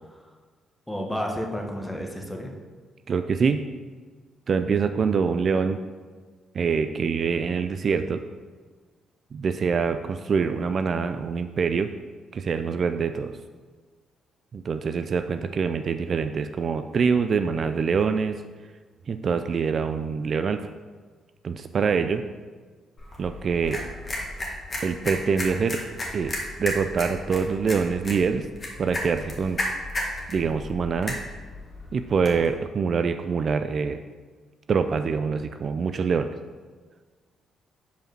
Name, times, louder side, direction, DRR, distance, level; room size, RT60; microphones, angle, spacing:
voice 1, 0.9-2.5, equal, 5° left, 1 dB, 1.2 m, -31 dB
voice 2, 3.1-3.6 4.5-5.8 6.5-8.2 9.3-11.9 12.3-13.4 14.5-18.3 19.1-20.7 21.4-22.2 23.2-23.8 24.8-25.8 26.1-28.5 28.8-29.6 30.3-31.2 31.9-34.0 34.7-36.3, right 5 dB, 50° right, 8 dB, 0.3 m, -25 dB
sound 1, 23.0-32.5, left 1 dB, 30° left, 1.7 m, -34 dB
5.1 x 4.9 x 5.9 m, 1.4 s
cardioid pair, 90°, 0 cm